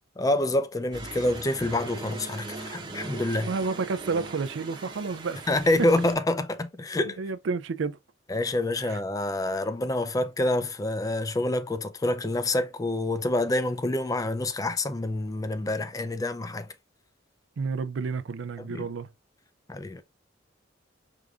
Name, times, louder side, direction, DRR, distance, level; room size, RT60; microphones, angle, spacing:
voice 1, 0.2-3.5 5.5-7.2 8.3-16.7 18.6-18.9 19.7-20.0, left 1 dB, 20° left, 0.4 m, -27 dB
sound 1, 0.9-6.1, right 3 dB, 25° right, 0.9 m, -40 dB
voice 2, 3.1-5.5 7.2-8.0 8.8-9.0 17.6-19.1, right 4 dB, 75° right, 0.4 m, -31 dB
4.9 x 3.6 x 2.4 m
head